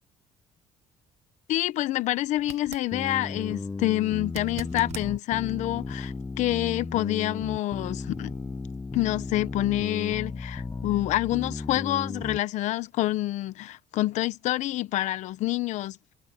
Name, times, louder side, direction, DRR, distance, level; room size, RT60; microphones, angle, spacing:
voice 1, 1.5-8.3 8.9-16.0, left 16 dB, 75° left, 1.1 m, -27 dB
sound 1, 2.4-2.9 4.3-5.1 8.1-8.2, right 11 dB, 65° right, 1.5 m, -41 dB
sound 2, 2.9-12.4, left 3 dB, 15° left, 0.5 m, -35 dB
supercardioid pair, 80°, 12 cm